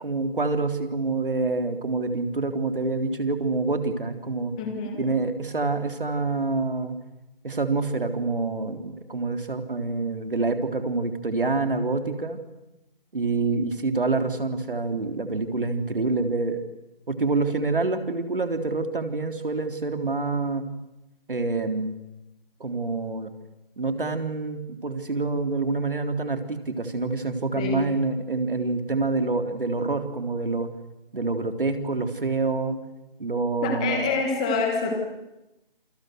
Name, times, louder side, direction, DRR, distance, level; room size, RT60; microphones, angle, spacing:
voice 1, 0.0-4.5 5.0-7.0 7.4-12.4 13.1-16.6 17.1-20.6 21.3-21.9 22.6-23.3 23.8-30.7 31.1-32.8 33.2-34.1, right 3 dB, 65° right, 7 dB, 3.7 m, -27 dB
voice 2, 4.6-5.1 27.6-27.9 33.6-35.0, left 4 dB, 5° left, 3 dB, 1.5 m, -26 dB
28.0 x 25.5 x 8.0 m, 0.95 s
figure-of-eight pair, 175°, 29 cm